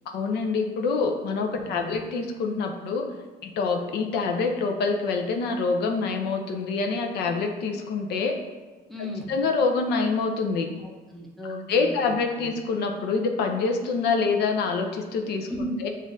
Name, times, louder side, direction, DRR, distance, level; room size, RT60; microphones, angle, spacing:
voice 1, 0.1-3.1 3.4-8.3 9.3-10.7 11.7-15.5 15.8-15.9, left 4 dB, 75° left, 3 dB, 0.6 m, -26 dB
voice 2, 1.6-2.0 8.9-9.4 10.8-12.1 12.4-12.5 15.5-15.8, equal, ahead, -2 dB, 0.7 m, -35 dB
7.0 x 2.5 x 2.6 m, 1.3 s
cardioid pair, 110°, 17 cm